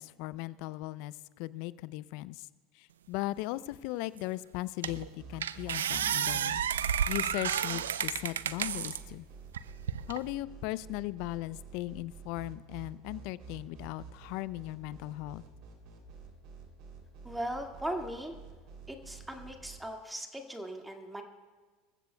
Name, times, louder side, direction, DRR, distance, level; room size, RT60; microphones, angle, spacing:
voice 1, 0.0-2.5 2.8-6.6 7.1-9.2 10.1-15.4, left 17 dB, 60° left, 18 dB, 0.5 m, -38 dB
sound 1, 4.2-4.3 4.8-5.1 5.4-9.0 9.5-10.2, right 9 dB, 80° right, 0.5 m, -31 dB
sound 2, 4.8-19.8, right 5 dB, 60° right, 3.1 m, -49 dB
voice 2, 17.2-18.3 18.9-21.2, right 1 dB, 5° right, 3 dB, 2.0 m, -38 dB
26.5 x 15.0 x 2.3 m, 1.4 s
hypercardioid pair, 85°, 0 cm